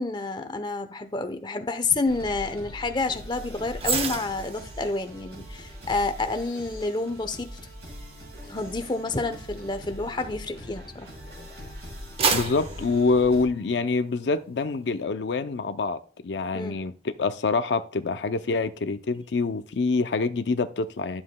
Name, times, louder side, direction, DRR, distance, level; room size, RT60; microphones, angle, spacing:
voice 1, 0.0-7.5 8.5-11.1 16.5-16.8, left 3 dB, 25° left, 0.7 m, -29 dB
sound 1, 2.0-13.4, left 1 dB, 75° right, 4.7 m, -42 dB
sound 2, 3.8-11.2 11.7-14.0 14.4-14.6, right 5 dB, 35° right, 0.8 m, -33 dB
voice 2, 12.3-16.9 17.2-21.2, left 4 dB, 80° left, 0.5 m, -26 dB
11.5 x 7.4 x 2.2 m
head